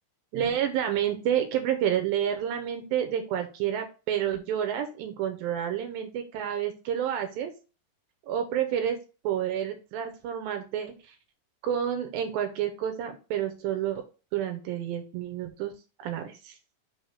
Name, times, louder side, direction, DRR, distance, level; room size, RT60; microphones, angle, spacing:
voice 1, 0.3-7.5 8.3-9.0 9.2-10.9 11.6-14.0 14.3-15.7 16.0-16.5, right 10 dB, 85° right, 6 dB, 2.6 m, -29 dB
5.4 x 3.5 x 5.6 m, 0.32 s
omnidirectional pair, 4.1 m